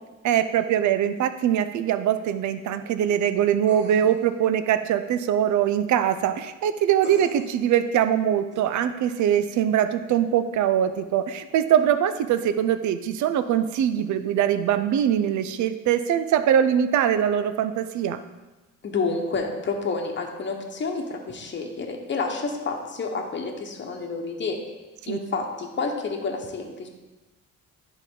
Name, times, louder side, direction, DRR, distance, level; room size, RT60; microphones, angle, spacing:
voice 1, 0.2-18.2 25.1-25.2, right 10 dB, 70° right, 11 dB, 0.6 m, -22 dB
sound 1, 3.7-4.3 7.0-7.6 8.5-8.6, right 3 dB, 35° right, 1.4 m, -40 dB
voice 2, 18.8-24.6 25.1-26.9, left 4 dB, 40° left, 1 dB, 1.1 m, -29 dB
10.5 x 4.0 x 3.8 m, 1.1 s
cardioid pair, 90°, 30 cm